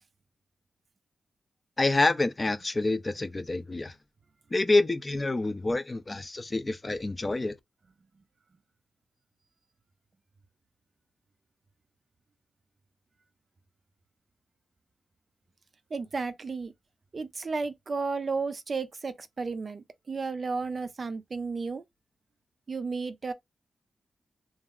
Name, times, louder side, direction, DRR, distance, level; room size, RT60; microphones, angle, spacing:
voice 1, 1.8-4.0 4.5-7.6, left 2 dB, 25° left, 0.4 m, -27 dB
voice 2, 15.9-16.7 17.1-21.8 22.7-23.3, right 4 dB, 40° right, 0.4 m, -33 dB
2.3 x 2.0 x 3.5 m
wide cardioid pair, 120°, 0 cm